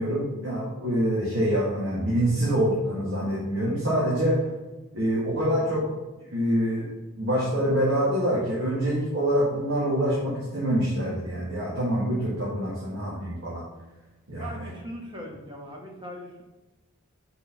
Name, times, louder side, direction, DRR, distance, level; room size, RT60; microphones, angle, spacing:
voice 1, 0.0-4.4 4.9-5.9 6.3-6.9 7.1-13.6 14.3-14.7, equal, 60° right, -7 dB, 1.8 m, -25 dB
voice 2, 14.4-16.4, equal, 20° right, 0 dB, 1.1 m, -39 dB
4.9 x 4.5 x 5.9 m, 1.1 s
head